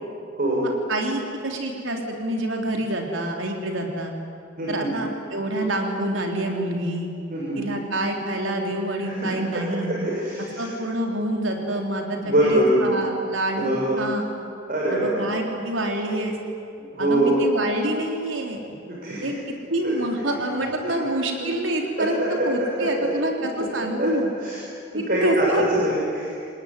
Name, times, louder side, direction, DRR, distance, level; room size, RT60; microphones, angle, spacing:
voice 1, 0.9-4.1 4.7-7.1 7.6-10.0 10.6-14.3 14.9-16.4 17.0-18.6 19.2-19.3 19.7-24.3 24.9-25.8, right 1 dB, 90° right, 2 dB, 3.9 m, -26 dB
voice 2, 4.6-4.9 7.3-7.7 9.0-10.7 12.2-12.9 13.6-14.0 14.7-15.2 16.8-17.3 18.9-19.4 19.8-19.9 20.9-21.0 22.0-23.1 23.8-24.1 24.4-24.6 24.9-26.4, right 1 dB, 50° right, -4 dB, 6.4 m, -24 dB
28.5 x 19.5 x 9.9 m, 2.5 s
head